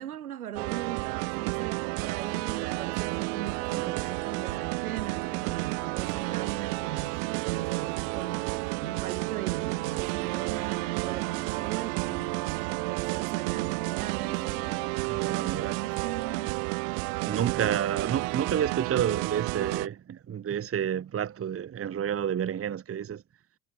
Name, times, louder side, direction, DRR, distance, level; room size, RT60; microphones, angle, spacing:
voice 1, 0.0-14.7 15.3-16.6, right 10 dB, 75° right, 6.1 m, -39 dB
sound 1, 0.6-19.9, right 40 dB or more, 55° right, 0.7 m, -31 dB
sound 2, 2.3-14.9, right 1 dB, 10° right, 6.3 m, -50 dB
voice 2, 15.0-15.8 17.2-23.2, right 9 dB, 30° right, 1.4 m, -30 dB
figure-of-eight pair, 55°, 44 cm